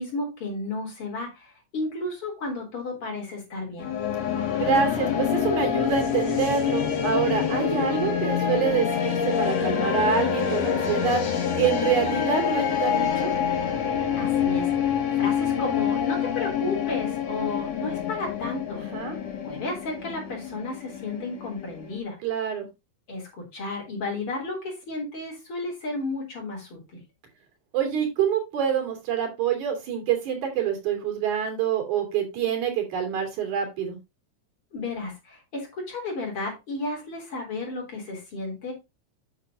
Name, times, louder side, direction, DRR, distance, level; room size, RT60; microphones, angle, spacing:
voice 1, 0.0-3.9 14.1-18.8 19.4-22.2 23.1-26.8 34.7-38.7, left 2 dB, 50° left, 0 dB, 4.4 m, -33 dB
sound 1, 3.8-22.0, left 8 dB, 65° left, 2.8 m, -26 dB
voice 2, 4.6-11.2 11.5-13.3 18.8-19.2 22.2-22.7 27.7-34.0, right 7 dB, 85° right, 3 dB, 4.1 m, -26 dB
8.9 x 6.4 x 3.7 m, 0.24 s
omnidirectional pair, 3.3 m